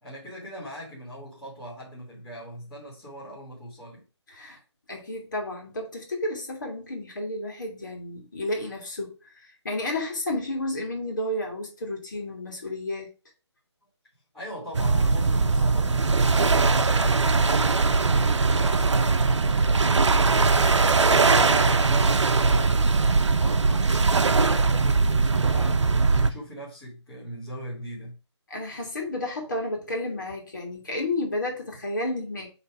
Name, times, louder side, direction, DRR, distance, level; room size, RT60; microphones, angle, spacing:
voice 1, 0.0-4.0 14.3-19.7 20.3-23.8 24.2-28.2, right 1 dB, 5° left, 1.6 m, -39 dB
voice 2, 4.9-13.1 28.5-32.5, left 1 dB, 40° left, 2.0 m, -31 dB
sound 1, 14.7-26.3, right 4 dB, 75° right, 0.8 m, -21 dB
6.7 x 3.4 x 4.7 m
hypercardioid pair, 175°, 15 cm